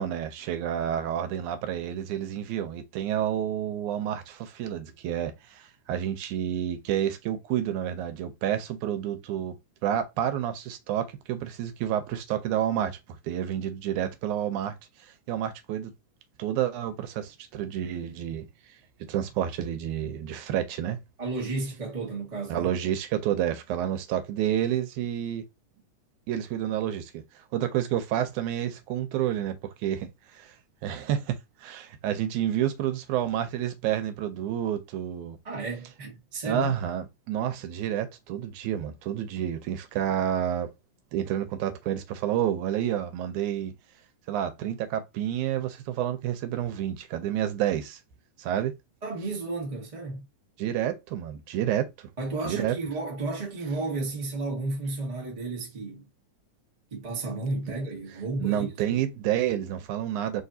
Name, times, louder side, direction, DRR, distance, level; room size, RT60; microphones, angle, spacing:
voice 1, 0.0-9.6 9.8-13.0 13.2-14.8 15.3-15.9 16.4-18.5 19.1-21.0 22.5-25.4 26.3-27.2 27.5-30.5 30.8-35.4 36.5-40.7 41.1-43.7 44.3-48.0 48.4-48.7 50.6-52.1 52.4-52.7 58.4-60.4, right 10 dB, 80° right, 2.1 m, -29 dB
voice 2, 21.2-22.7 35.4-36.7 49.0-50.2 52.2-56.0 56.9-59.0, right 3 dB, 30° right, 0.7 m, -32 dB
4.3 x 3.3 x 2.7 m
omnidirectional pair, 3.4 m